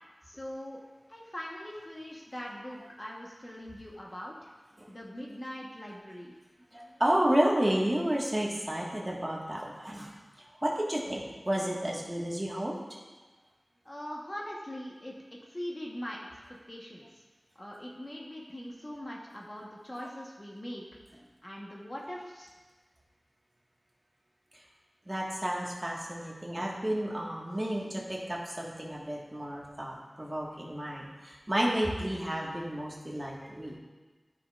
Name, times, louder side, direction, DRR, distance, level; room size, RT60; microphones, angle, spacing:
voice 1, 0.3-0.8 1.1-4.5 4.9-6.3 13.8-16.4 16.7-17.0 17.5-20.8 21.4-22.5, equal, 25° left, -3 dB, 1.1 m, -41 dB
voice 2, 6.7-10.1 10.4-12.8 24.5-24.6 25.0-33.8, right 1 dB, 25° right, -3 dB, 1.5 m, -31 dB
13.5 x 6.0 x 2.4 m, 1.3 s
wide cardioid pair, 70°, 0 cm